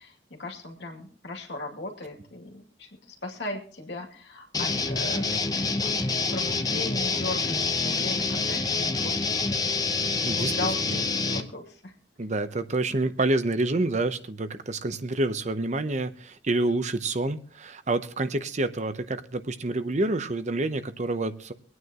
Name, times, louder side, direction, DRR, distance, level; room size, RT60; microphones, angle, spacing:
voice 1, 0.0-9.6 10.2-11.9, left 2 dB, 80° left, 1 dB, 2.4 m, -37 dB
sound 1, 4.5-11.4, left 4 dB, 20° left, 0.8 m, -27 dB
voice 2, 12.2-21.5, right 2 dB, 40° right, 11 dB, 0.8 m, -28 dB
24.5 x 9.5 x 2.9 m, 0.42 s
head